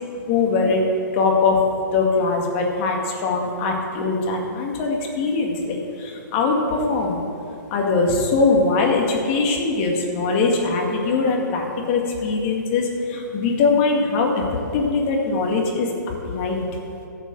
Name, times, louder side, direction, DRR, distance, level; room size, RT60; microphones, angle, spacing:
voice 1, 0.3-0.8 1.1-1.6 1.9-7.2 7.7-14.4 14.7-15.9 16.3-16.6, left 4 dB, 35° left, 0 dB, 2.1 m, -21 dB
12.0 x 6.7 x 7.7 m, 2.6 s
hypercardioid pair, 130°, 11 cm